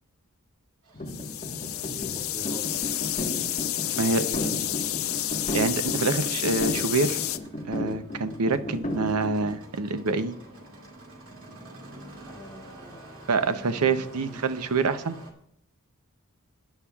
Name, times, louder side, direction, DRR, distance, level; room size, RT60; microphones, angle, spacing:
Engine starting, 0.8-15.3, right 2 dB, 65° right, 2.5 m, -50 dB
sound 1, 0.9-9.5, left 1 dB, 35° left, 1.4 m, -34 dB
sound 2, 1.1-7.4, left 13 dB, 65° left, 0.6 m, -30 dB
voice 1, 1.5-2.8 3.8-5.2 12.3-14.4, equal, 5° left, -3 dB, 2.4 m, -44 dB
voice 2, 5.5-7.2 7.7-10.3 13.3-15.2, right 3 dB, 90° right, 10 dB, 0.8 m, -26 dB
18.5 x 10.0 x 2.4 m, 0.72 s
head